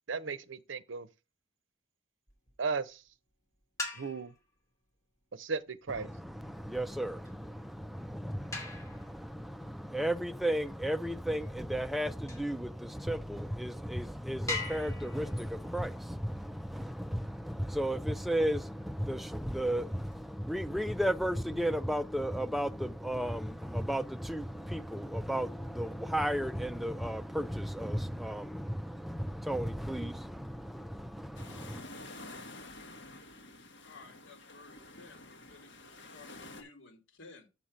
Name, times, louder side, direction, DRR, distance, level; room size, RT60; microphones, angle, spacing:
voice 1, 0.1-1.1 2.6-3.0 3.9-4.3 5.3-6.1, right 5 dB, 70° right, 0.7 m, -35 dB
sound 1, 2.3-2.7 3.6-4.5 6.1-12.6 13.3-13.4 13.8-13.9 14.5-17.1 19.2-20.2, left 3 dB, 15° left, 2.4 m, -44 dB
voice 2, 6.0-31.8, equal, ahead, 0.3 m, -34 dB
sound 2, 31.3-36.6, left 2 dB, 60° left, 1.6 m, -49 dB
voice 3, 33.8-37.5, left 3 dB, 80° left, 2.0 m, -55 dB
7.2 x 5.9 x 5.0 m
head